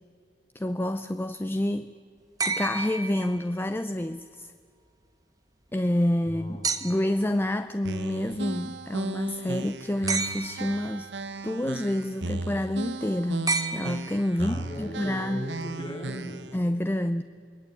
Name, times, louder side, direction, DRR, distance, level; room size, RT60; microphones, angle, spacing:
voice 1, 0.5-1.9 2.4-4.5 5.7-11.1 11.4-15.4 16.5-17.2, left 1 dB, 15° left, 0.5 m, -28 dB
sound 1, 2.4-3.8 6.6-7.3 10.1-10.9 13.5-14.5 16.1-16.2, right 4 dB, 20° right, 1.3 m, -31 dB
voice 2, 6.3-6.7 14.4-16.5, equal, 30° left, 4.1 m, -37 dB
sound 2, 7.8-16.6, right 2 dB, 90° right, 1.0 m, -36 dB
28.5 x 20.5 x 8.4 m
head